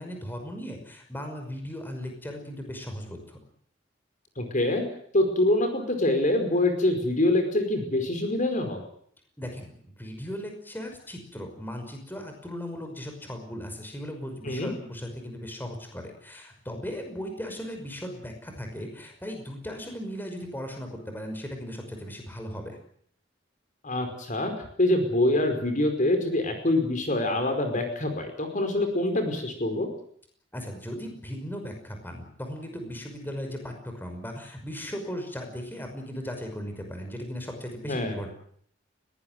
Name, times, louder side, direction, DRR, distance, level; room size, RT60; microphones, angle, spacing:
voice 1, 0.0-3.4 9.4-22.8 30.5-38.3, equal, 10° left, 4 dB, 5.7 m, -37 dB
voice 2, 4.4-4.8 5.1-8.8 14.4-14.7 23.8-24.5 24.8-29.9 37.9-38.2, left 1 dB, 45° left, 6 dB, 5.0 m, -25 dB
21.5 x 19.0 x 9.3 m, 0.63 s
head